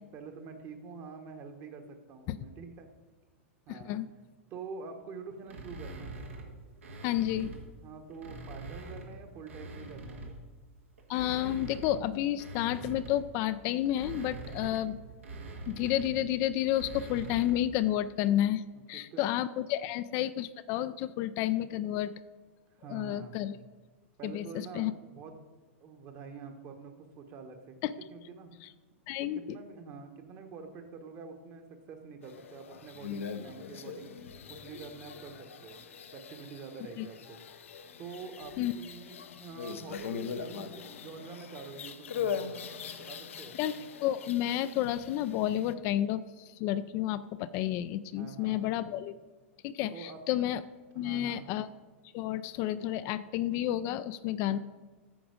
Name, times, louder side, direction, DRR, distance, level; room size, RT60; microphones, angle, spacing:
voice 1, 0.1-2.9 3.7-3.9 4.5-6.2 7.8-10.4 18.7-19.2 22.7-23.4 24.2-25.4 25.8-28.7 29.2-34.1 34.5-35.9 36.1-37.4 38.0-43.6 48.1-48.7 49.9-50.2 50.9-51.5 54.4-54.6, right 5 dB, 40° right, 6 dB, 1.2 m, -46 dB
voice 2, 3.7-4.1 7.0-7.5 11.1-15.0 15.7-18.6 18.9-22.1 22.9-23.6 24.2-24.9 27.8-27.9 29.1-29.6 37.0-37.1 38.6-38.7 43.6-43.7 44.0-49.2 49.6-50.6 51.0-51.7 52.1-54.6, left 12 dB, 45° left, 13 dB, 0.4 m, -31 dB
sound 1, 5.5-7.7 8.1-10.5 11.0-17.7, right 3 dB, 85° right, 1.5 m, -44 dB
sound 2, 32.2-45.7, left 7 dB, 80° left, 0.7 m, -41 dB
9.0 x 6.0 x 5.0 m, 1.3 s
hypercardioid pair, 110°, 7 cm